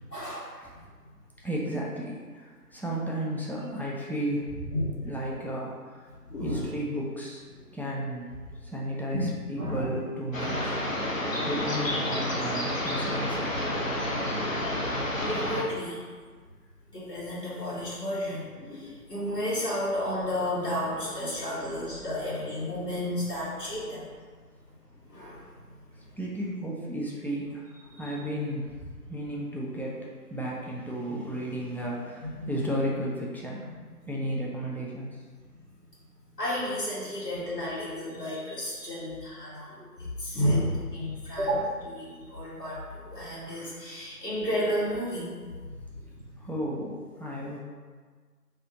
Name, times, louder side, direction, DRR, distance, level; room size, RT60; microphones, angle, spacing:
voice 1, 0.1-0.5 4.7-5.2 6.3-6.7 9.1-9.3 9.5-9.9 14.2-14.3 15.2-16.0 16.9-24.0 25.1-25.4 28.0-28.1 32.4-32.6 33.6-33.7 36.4-39.8 40.2-45.2, equal, 85° left, -8 dB, 1.2 m, -32 dB
voice 2, 1.4-4.8 5.0-6.1 6.4-7.4 7.7-8.3 8.6-10.7 11.4-13.4 25.9-33.6 34.1-35.2 46.4-47.6, equal, 5° left, -5 dB, 0.4 m, -33 dB
sound 1, 10.3-15.6, left 1 dB, 55° left, 0.6 m, -29 dB
2.5 x 2.5 x 3.7 m, 1.5 s
figure-of-eight pair, 175°, 47 cm